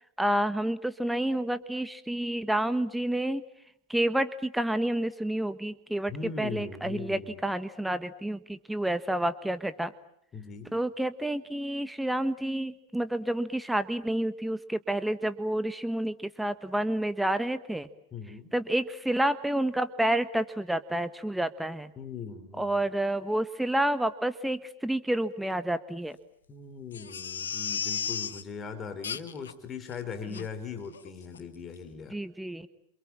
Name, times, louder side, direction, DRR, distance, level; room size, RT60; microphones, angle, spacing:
voice 1, 0.2-3.4 3.9-6.1 6.4-9.9 10.7-17.9 18.5-21.9 22.6-26.2 30.3-30.4 32.1-32.7, right 1 dB, 5° right, 12 dB, 1.3 m, -29 dB
voice 2, 6.1-7.4 10.3-10.7 18.1-18.5 22.0-22.8 26.5-32.2, left 5 dB, 25° left, 8 dB, 4.1 m, -40 dB
Crying sobbing, 26.9-28.4 29.0-29.5 29.9-30.0 30.3-30.5 30.9-31.1 31.3-31.4, left 7 dB, 75° left, 1.6 m, -34 dB
28.5 x 27.5 x 7.4 m, 0.74 s
figure-of-eight pair, 95°, 0 cm